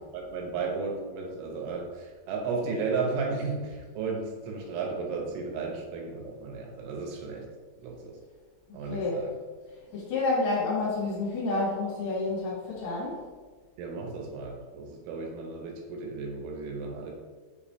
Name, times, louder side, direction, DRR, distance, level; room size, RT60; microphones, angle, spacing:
voice 1, 0.1-7.4 7.8-8.1 8.7-9.2 13.8-17.1, right 4 dB, 85° right, 0 dB, 3.5 m, -34 dB
voice 2, 8.7-9.3 9.9-13.3, left 3 dB, 70° left, -7 dB, 3.7 m, -29 dB
7.7 x 5.2 x 2.9 m, 1.4 s
omnidirectional pair, 5.4 m